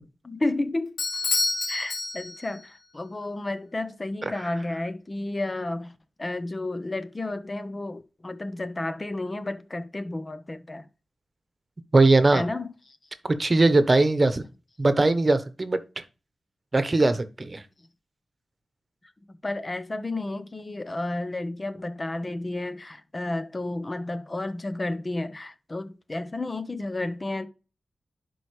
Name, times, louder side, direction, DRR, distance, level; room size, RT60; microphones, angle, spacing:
voice 1, 0.2-1.0 1.7-10.9 12.3-13.0 19.3-27.5, left 2 dB, 35° left, 1.0 m, -32 dB
Bell / Doorbell, 1.0-2.7, left 3 dB, 80° left, 2.7 m, -28 dB
voice 2, 11.9-12.4 13.2-14.4 14.8-15.8 16.7-17.6, right 2 dB, 35° right, 1.1 m, -20 dB
11.0 x 4.7 x 3.3 m
cardioid pair, 55°, 0 cm